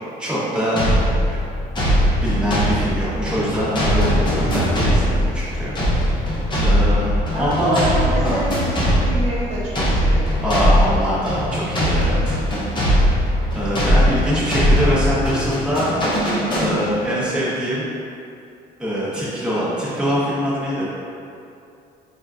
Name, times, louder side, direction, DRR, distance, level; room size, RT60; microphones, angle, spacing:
voice 1, 0.2-0.8 1.3-1.4 2.2-6.1 6.6-8.4 10.4-12.4 13.5-15.9 16.5-17.9 18.8-20.9, equal, 5° right, -10 dB, 1.0 m, -23 dB
sound 1, 0.8-17.2, equal, 25° left, 0.8 m, -20 dB
voice 2, 7.3-10.4, right 1 dB, 40° right, -11 dB, 0.8 m, -26 dB
4.3 x 2.3 x 2.5 m, 2.6 s
cardioid pair, 110°, 17 cm